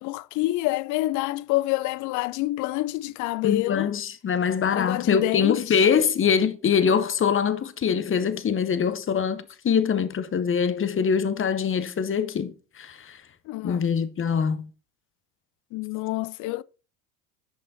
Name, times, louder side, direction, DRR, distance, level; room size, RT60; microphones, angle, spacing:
voice 1, 0.0-3.9 4.7-5.8 13.5-13.8 15.7-16.6, left 18 dB, 40° left, 0.4 m, -27 dB
voice 2, 3.4-13.2 13.6-14.7, left 7 dB, 25° left, 0.9 m, -24 dB
10.5 x 5.5 x 4.1 m
hypercardioid pair, 80°, 48 cm